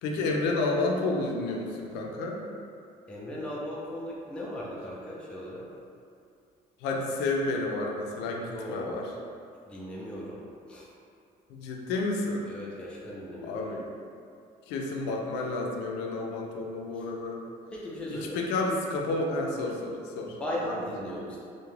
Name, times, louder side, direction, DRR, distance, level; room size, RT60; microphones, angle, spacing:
voice 1, 0.0-2.4 6.8-9.1 11.5-12.5 13.4-13.9 14.7-17.4 18.1-20.4 20.6-20.7, left 2 dB, 90° left, 0 dB, 0.4 m, -30 dB
voice 2, 3.1-5.7 8.4-8.9 9.7-10.9 12.5-13.6 16.9-17.0 17.7-18.4 20.4-21.4, left 1 dB, 5° left, -5 dB, 0.4 m, -37 dB
2.3 x 2.1 x 3.1 m, 2.4 s
cardioid pair, 110°, 17 cm